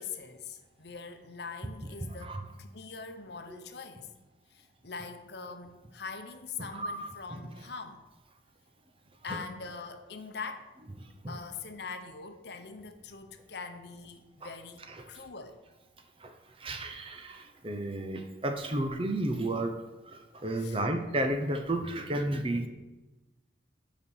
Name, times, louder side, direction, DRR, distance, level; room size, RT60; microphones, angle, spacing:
voice 1, 0.0-4.1 4.5-8.0 9.2-10.7 11.3-15.6 20.6-20.8, left 5 dB, 60° left, 7 dB, 0.8 m, -43 dB
voice 2, 2.0-2.4 3.5-3.6 6.7-7.4 9.3-9.4 11.2-11.3 15.0-15.1 16.2-16.3 16.6-19.8 20.1-22.7, right 1 dB, 30° right, 6 dB, 0.7 m, -32 dB
7.1 x 5.2 x 7.1 m, 1.1 s
head